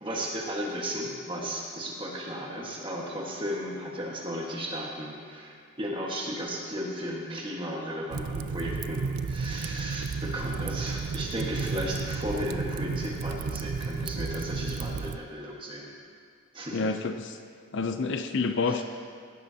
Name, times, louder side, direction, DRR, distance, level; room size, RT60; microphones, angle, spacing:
voice 1, 0.0-15.9 16.5-17.0 18.6-18.8, equal, 25° right, -2 dB, 1.5 m, -35 dB
Fire, 8.1-15.2, right 5 dB, 80° right, 0.4 m, -33 dB
voice 2, 16.7-17.4 17.7-18.8, left 4 dB, 55° left, 8 dB, 0.5 m, -28 dB
15.5 x 12.0 x 2.8 m, 2.2 s
head